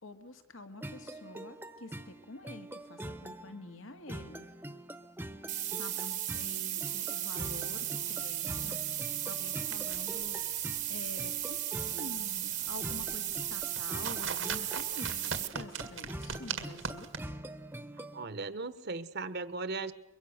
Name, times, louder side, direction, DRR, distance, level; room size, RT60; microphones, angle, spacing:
voice 1, 0.0-4.5 5.8-17.1, left 2 dB, 80° left, 6 dB, 2.1 m, -48 dB
sound 1, 0.8-18.3, right 1 dB, 10° right, 1.0 m, -45 dB
sound 2, 5.5-15.5, right 12 dB, 40° right, 1.1 m, -35 dB
sound 3, 9.4-17.2, right 6 dB, 85° right, 1.9 m, -42 dB
voice 2, 17.9-19.9, right 3 dB, 55° right, 13 dB, 1.2 m, -38 dB
23.5 x 23.0 x 6.6 m, 0.91 s
head